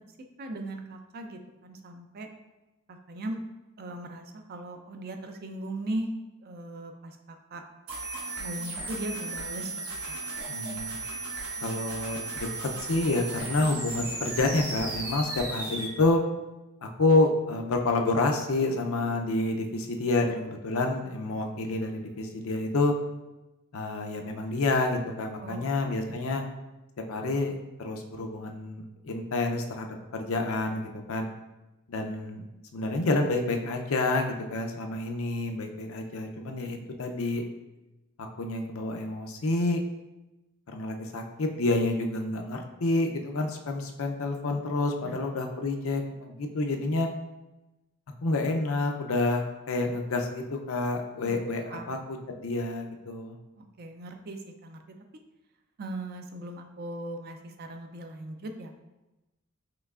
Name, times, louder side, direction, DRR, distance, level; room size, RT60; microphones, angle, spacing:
voice 1, 0.4-2.3 2.9-3.4 3.8-6.1 6.4-7.6 8.4-10.2 25.4-25.7 26.1-26.2 45.0-45.2 51.2-51.3 51.7-51.9 53.6-54.8 55.8-58.7, right 1 dB, 45° right, 5 dB, 0.4 m, -38 dB
sound 1, 7.9-15.9, right 3 dB, 75° right, 1.0 m, -36 dB
voice 2, 10.5-11.0 11.6-12.5 12.8-16.2 16.8-22.9 23.7-26.4 27.1-27.5 27.8-31.3 31.9-32.4 32.7-37.4 38.4-39.8 40.7-47.1 48.2-52.2 52.4-53.4, left 2 dB, 65° left, 3 dB, 0.5 m, -28 dB
5.7 x 3.2 x 2.4 m, 1.0 s
head